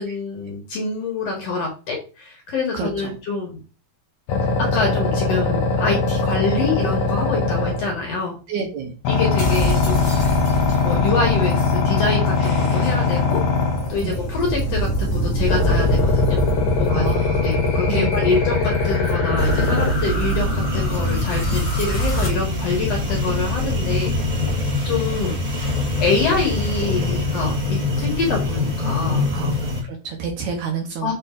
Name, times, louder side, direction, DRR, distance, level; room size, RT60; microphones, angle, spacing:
voice 1, 0.0-3.6 4.7-8.4 9.1-10.3 10.8-13.4 13.9-16.4 16.8-17.1 17.4-24.2 24.8-25.7 26.0-29.3 31.0-31.1, left 4 dB, 55° left, 1 dB, 2.0 m, -25 dB
voice 2, 2.7-3.2 8.5-8.9 14.0-14.2 16.9-17.6 17.9-18.3 29.3-31.1, right 5 dB, 65° right, 2 dB, 2.1 m, -29 dB
sound 1, 4.3-8.1 9.1-14.0 15.5-19.9, left 4 dB, 80° left, 1.5 m, -21 dB
sound 2, 9.4-22.3, right 1 dB, 40° left, 1.2 m, -27 dB
sound 3, 19.4-29.8, left 2 dB, 15° right, 1.4 m, -24 dB
6.7 x 3.9 x 3.8 m, 0.33 s
omnidirectional pair, 4.1 m